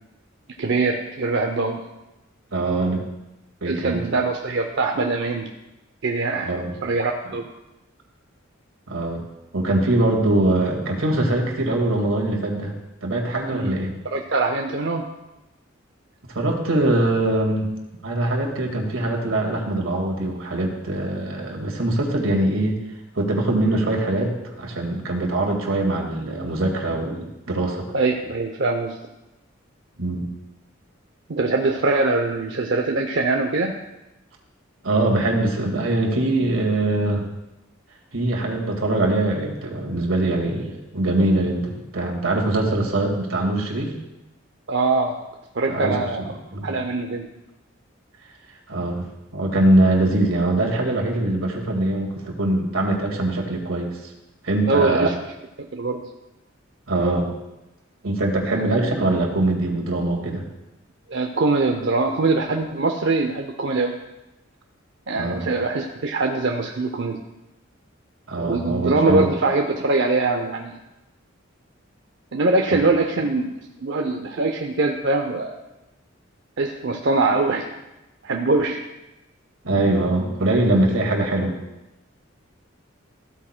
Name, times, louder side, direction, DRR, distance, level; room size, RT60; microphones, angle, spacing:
voice 1, 0.6-1.9 3.7-5.5 6.0-6.5 6.8-7.5 13.5-13.7 14.1-15.1 27.9-29.0 31.3-33.8 44.7-45.2 45.5-46.4 46.6-47.3 54.7-55.1 55.7-56.0 58.5-58.6 61.1-63.9 65.1-67.2 68.4-70.8 72.3-75.6 76.6-77.7 78.2-78.9, right 3 dB, 60° right, 2 dB, 0.6 m, -23 dB
voice 2, 2.5-3.0 3.6-4.0 6.4-6.7 8.9-9.3 9.5-12.7 13.0-13.9 16.3-17.7 18.0-22.8 23.1-24.3 24.6-27.8 30.0-30.3 34.8-37.3 38.1-44.0 45.7-46.0 46.5-46.8 48.7-49.1 49.3-54.1 54.4-55.1 56.9-57.3 58.0-60.4 65.1-65.5 68.3-69.3 72.7-72.8 79.6-81.5, right 2 dB, 85° right, 0 dB, 1.9 m, -22 dB
14.5 x 8.6 x 2.2 m, 0.97 s
head